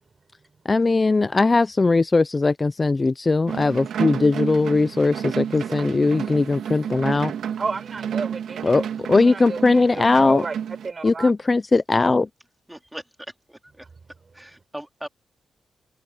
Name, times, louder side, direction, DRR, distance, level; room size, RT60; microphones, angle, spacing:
voice 1, 0.6-7.3 8.6-10.4 11.0-12.3, left 3 dB, 30° left, 0.6 m, -19 dB
sound 1, 3.5-10.9, right 8 dB, 90° right, 2.0 m, -31 dB
voice 2, 7.6-8.8 9.2-10.5 10.8-11.3, right 4 dB, 45° right, 4.7 m, -32 dB
voice 3, 12.7-13.0 14.4-15.1, right 1 dB, 10° right, 3.5 m, -37 dB
cardioid pair, 70°, 0 cm